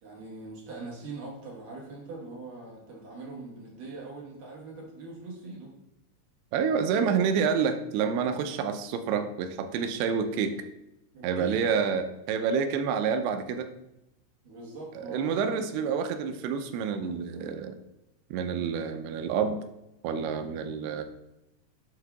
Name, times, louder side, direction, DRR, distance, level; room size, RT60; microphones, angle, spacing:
voice 1, 0.0-5.7 11.1-12.0 14.4-15.9, right 2 dB, 65° right, -3 dB, 2.4 m, -42 dB
voice 2, 6.5-10.6 11.2-13.7 15.0-17.8 18.3-19.6 20.0-21.0, right 6 dB, 85° right, 8 dB, 2.6 m, -28 dB
7.9 x 2.7 x 5.8 m, 0.89 s
omnidirectional pair, 4.6 m